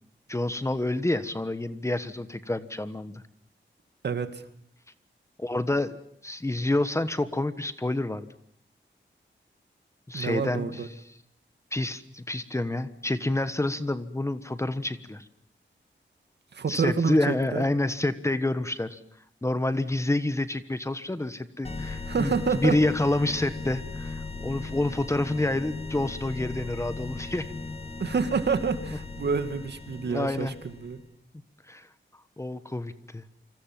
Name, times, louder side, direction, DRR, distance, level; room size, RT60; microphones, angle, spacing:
voice 1, 0.3-3.2 5.4-6.0 6.2-8.3 10.1-10.8 11.7-15.2 16.7-19.0 19.4-27.5 30.0-30.5 31.7-31.9 32.4-33.2, left 2 dB, 15° left, 12 dB, 1.3 m, -28 dB
voice 2, 4.0-4.4 10.1-10.9 16.5-17.6 22.1-22.8 28.0-31.0, right 5 dB, 60° right, 10 dB, 2.3 m, -28 dB
sound 1, 21.6-31.1, left 3 dB, 30° left, 2.0 m, -37 dB
28.0 x 26.0 x 7.5 m, 0.65 s
wide cardioid pair, 180°, 20 cm